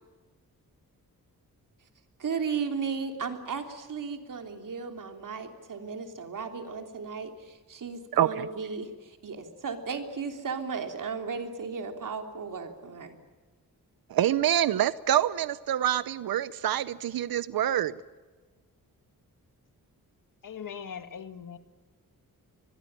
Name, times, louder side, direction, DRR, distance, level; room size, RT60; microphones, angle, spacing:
voice 1, 2.2-13.1, right 5 dB, 65° right, 6 dB, 3.3 m, -35 dB
voice 2, 8.1-8.5 14.1-18.0, right 11 dB, 80° right, 17 dB, 0.7 m, -26 dB
voice 3, 20.4-21.6, left 7 dB, 65° left, 10 dB, 1.8 m, -40 dB
24.5 x 21.0 x 8.9 m, 1.4 s
wide cardioid pair, 100°, 35 cm